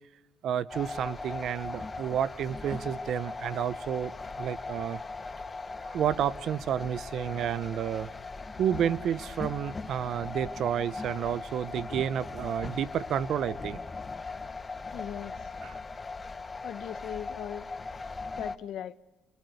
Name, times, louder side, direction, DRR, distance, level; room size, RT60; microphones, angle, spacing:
voice 1, 0.4-5.0 5.9-8.1 8.6-13.8 15.6-15.8, right 9 dB, 60° right, 1.1 m, -30 dB
sound 1, 0.7-18.6, left 3 dB, 25° left, 1.5 m, -39 dB
voice 2, 14.9-15.3 16.6-17.7 18.4-18.9, left 11 dB, 65° left, 1.2 m, -38 dB
28.0 x 26.0 x 8.2 m
cardioid pair, 90°, 0 cm